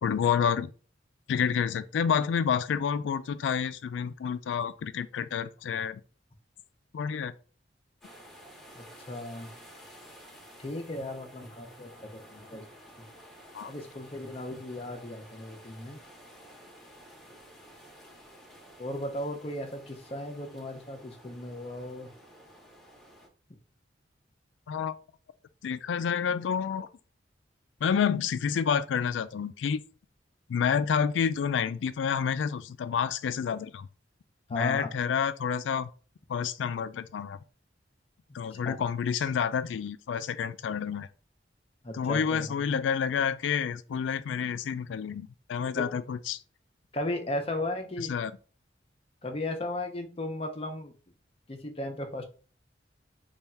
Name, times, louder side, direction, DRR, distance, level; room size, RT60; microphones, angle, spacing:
voice 1, 0.0-0.7 1.3-6.0 6.9-7.3 13.5-13.7 24.7-25.0 25.6-26.9 27.8-29.8 30.5-33.9 34.5-35.9 36.3-37.4 38.3-41.1 41.9-46.4 48.1-48.3, left 7 dB, 85° left, 0.3 m, -29 dB
sound 1, 8.0-23.3, equal, ahead, 0.9 m, -52 dB
voice 2, 8.8-9.5 10.6-12.7 13.6-16.0 18.8-22.1 34.5-34.9 38.6-38.7 41.8-42.8 45.8-45.9 46.9-48.2 49.2-50.9 51.5-52.2, left 1 dB, 30° left, 0.6 m, -36 dB
3.4 x 2.4 x 4.2 m
head